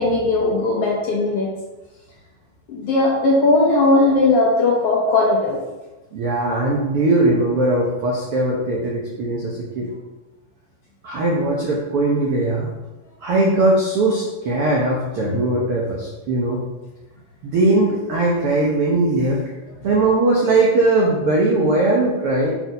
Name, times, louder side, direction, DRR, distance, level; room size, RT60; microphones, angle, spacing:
voice 1, 0.0-1.5 2.7-5.6, left 2 dB, 75° left, -3 dB, 1.4 m, -18 dB
voice 2, 6.1-9.9 11.0-12.7 13.2-16.6 17.4-19.4 19.8-22.5, right 2 dB, 85° right, -3 dB, 1.2 m, -19 dB
6.7 x 4.5 x 5.2 m, 1.1 s
omnidirectional pair, 4.2 m